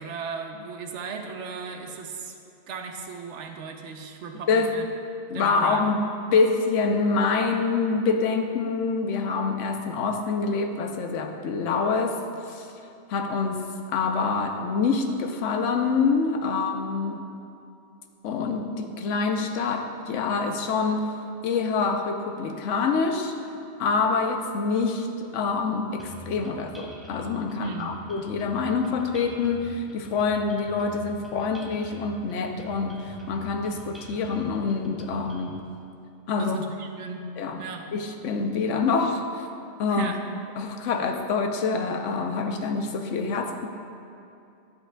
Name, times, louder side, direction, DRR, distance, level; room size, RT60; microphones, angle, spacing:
voice 1, 0.0-2.4 2.7-4.9 5.3-5.8 27.6-28.0 36.4-37.3 37.6-37.9 39.9-40.2, right 5 dB, 75° right, 4 dB, 1.0 m, -36 dB
voice 2, 5.3-6.0 6.3-12.2 12.5-12.7 13.1-13.6 13.9-17.2 18.2-21.2 21.4-23.4 23.8-35.6 36.3-36.6 37.4-37.6 37.9-39.5 39.8-40.1 40.6-43.7, left 4 dB, 80° left, 5 dB, 1.0 m, -26 dB
sound 1, 26.0-35.6, right 1 dB, ahead, 0.6 m, -46 dB
10.5 x 7.3 x 2.2 m, 2.7 s
omnidirectional pair, 1.2 m